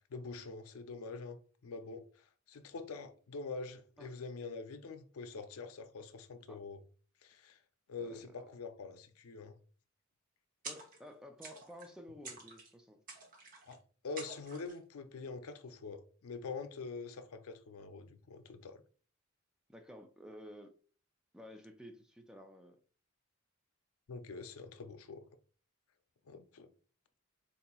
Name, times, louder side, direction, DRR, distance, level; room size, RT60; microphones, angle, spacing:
voice 1, 0.1-1.4 1.6-6.8 7.2-7.6 7.9-9.6 13.7-18.8 24.1-25.3 26.3-26.7, left 4 dB, 85° left, 0.5 m, -45 dB
voice 2, 8.0-8.4 10.6-13.0 19.7-20.7 21.3-22.8, equal, 5° right, 0.4 m, -52 dB
sound 1, 10.6-11.1 11.4-11.9 12.2-12.7 13.1-13.7 14.2-14.8, right 3 dB, 40° right, 0.9 m, -49 dB
3.9 x 2.8 x 2.2 m
head